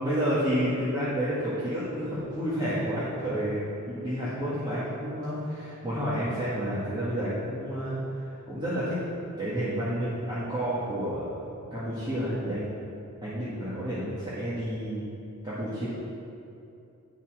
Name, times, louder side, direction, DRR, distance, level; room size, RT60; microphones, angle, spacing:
voice 1, 0.0-8.0 8.3-9.0 9.4-12.7 13.2-15.0 15.4-15.9, equal, 20° right, -12 dB, 1.8 m, -30 dB
9.4 x 5.7 x 6.1 m, 2.7 s
head